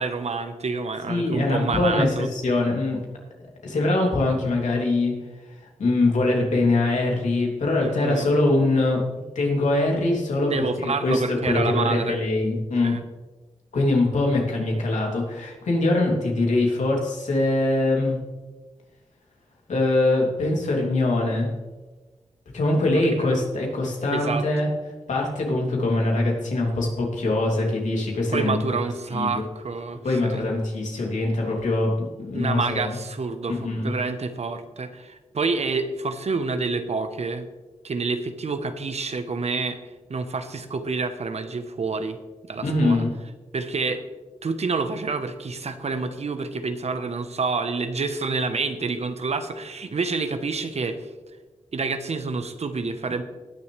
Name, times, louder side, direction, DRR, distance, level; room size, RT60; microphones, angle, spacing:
voice 1, 0.0-2.3 7.8-8.3 10.5-12.2 12.8-13.0 22.9-23.4 24.1-24.4 28.3-30.4 32.3-33.6 33.8-37.5 37.8-39.8 40.1-42.2 42.4-43.0 43.5-44.0 44.4-51.0 51.7-53.2, right 4 dB, 60° right, 9 dB, 1.1 m, -28 dB
voice 2, 1.1-3.0 3.6-5.1 5.8-9.0 9.3-12.9 13.7-18.2 19.7-21.5 22.5-24.7 25.1-28.6 29.1-29.5 30.0-33.0 33.5-33.9 42.6-43.1, left 2 dB, 85° left, -1 dB, 2.9 m, -23 dB
19.5 x 7.0 x 3.4 m, 1.2 s
cardioid pair, 50°, 12 cm